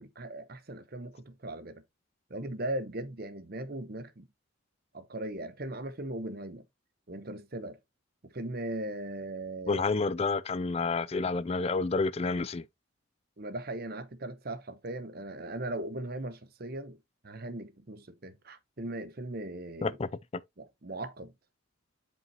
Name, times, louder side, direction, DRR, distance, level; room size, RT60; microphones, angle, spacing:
voice 1, 0.0-1.8 2.3-4.3 4.9-6.7 7.1-7.8 8.2-9.8 13.4-17.0 17.2-20.0 20.6-21.3, right 1 dB, 45° right, 0.8 m, -38 dB
voice 2, 9.7-12.6 19.8-20.1, left 3 dB, 30° left, 0.3 m, -29 dB
7.7 x 5.4 x 2.8 m
head